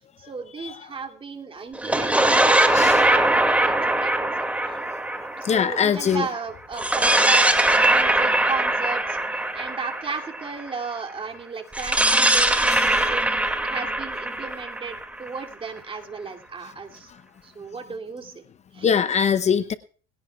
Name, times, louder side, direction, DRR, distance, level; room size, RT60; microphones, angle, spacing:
voice 1, 0.2-4.1 4.6-4.8 5.4-9.2 9.5-13.2 13.6-17.1 17.4-18.4 18.7-18.9, right 4 dB, 25° right, 3 dB, 2.7 m, -34 dB
sound 1, 1.7-6.2 6.7-10.7 11.7-15.5, right 1 dB, 5° right, 2.3 m, -21 dB
voice 2, 5.4-6.3 12.6-13.1 18.8-19.7, left 7 dB, 35° left, 12 dB, 0.8 m, -23 dB
19.0 x 17.0 x 2.4 m, 0.40 s
supercardioid pair, 105°, 20 cm